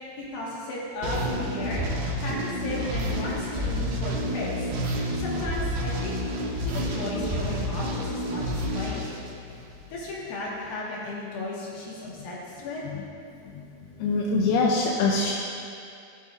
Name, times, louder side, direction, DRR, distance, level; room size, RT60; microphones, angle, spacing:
voice 1, 0.0-1.8 2.2-4.7 4.9-6.1 6.5-9.1 9.9-12.8, left 2 dB, 70° left, -6 dB, 3.5 m, -35 dB
sound 1, 1.0-9.9, equal, 70° right, 2.7 m, -29 dB
voice 2, 14.0-15.3, left 3 dB, 90° left, -2 dB, 2.6 m, -24 dB
17.0 x 6.9 x 2.6 m, 2.5 s
omnidirectional pair, 4.4 m